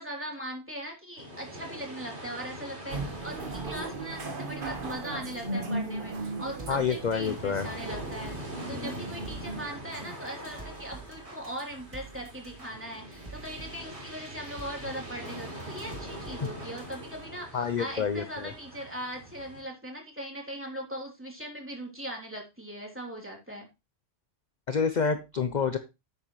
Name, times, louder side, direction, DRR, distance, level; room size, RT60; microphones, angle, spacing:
voice 1, 0.0-23.7, equal, 10° right, -1 dB, 3.3 m, -40 dB
sound 1, 1.2-19.6, right 1 dB, 65° right, 3.8 m, -43 dB
sound 2, 2.9-9.6, right 2 dB, 45° right, 1.5 m, -37 dB
sound 3, 6.1-17.5, right 3 dB, 30° right, 2.3 m, -49 dB
voice 2, 6.7-7.7 17.5-18.5 24.7-25.8, left 6 dB, 45° left, 9 dB, 0.8 m, -28 dB
11.0 x 8.6 x 3.2 m, 0.26 s
omnidirectional pair, 1.2 m